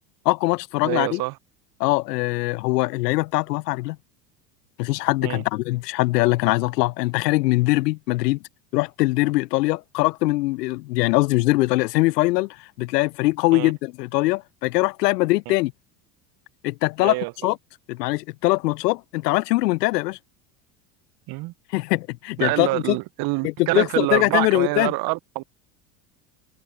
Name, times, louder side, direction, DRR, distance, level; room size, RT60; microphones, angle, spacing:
voice 1, 0.2-1.2 1.8-4.0 4.8-8.4 8.7-15.7 16.6-17.2 17.4-17.6 17.9-20.2 21.7-23.0 23.4-24.9, left 20 dB, 70° left, 0.8 m, -22 dB
voice 2, 0.8-1.4 5.2-5.4 13.5-13.7 15.5-15.6 17.0-17.3 21.3-21.5 22.4-25.6, right 23 dB, 50° right, 0.8 m, -26 dB
hypercardioid pair, 80°, 49 cm